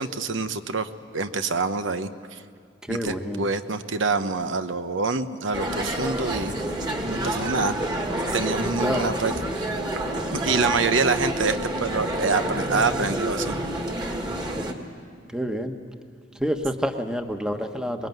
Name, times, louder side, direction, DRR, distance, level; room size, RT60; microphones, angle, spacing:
voice 1, 0.0-2.4 2.9-6.6 7.1-7.8 8.3-9.7 10.3-13.6, right 4 dB, 85° right, 9 dB, 1.0 m, -26 dB
voice 2, 2.9-3.5 8.8-9.1 15.3-15.8 16.4-18.1, equal, 5° right, 6 dB, 1.1 m, -27 dB
sound 1, 5.5-14.7, right 1 dB, 25° right, 1.8 m, -28 dB
24.0 x 21.5 x 9.3 m, 2.1 s
head